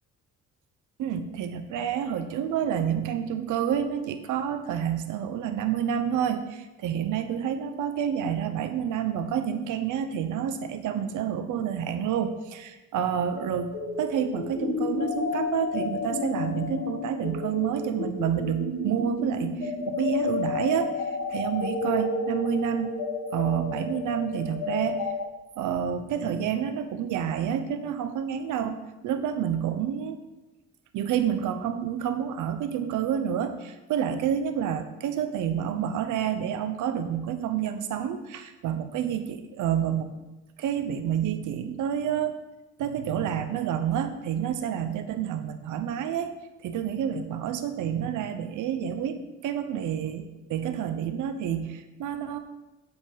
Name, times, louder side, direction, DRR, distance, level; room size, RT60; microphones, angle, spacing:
voice 1, 1.0-20.9 21.3-23.0 23.3-25.1 25.6-30.2 30.9-40.1 40.6-42.4 42.8-46.3 46.6-52.4, right 9 dB, 85° right, 9 dB, 0.9 m, -29 dB
sound 1, 13.4-25.2, left 3 dB, 70° left, 1.7 m, -31 dB
8.0 x 7.7 x 5.0 m, 1.1 s
cardioid pair, 90°, 30 cm